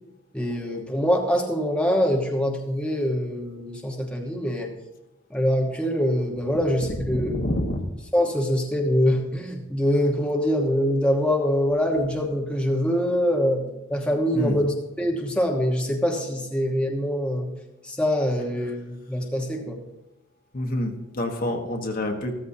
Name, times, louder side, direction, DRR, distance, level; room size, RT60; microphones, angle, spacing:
voice 1, 0.3-4.7 5.3-7.4 8.1-17.5 17.8-19.8, equal, 5° left, 0 dB, 1.1 m, -24 dB
voice 2, 6.9-7.9 14.3-14.6 18.6-18.7 20.5-22.3, left 1 dB, 40° left, 3 dB, 1.3 m, -27 dB
14.5 x 14.0 x 2.8 m, 1.0 s
head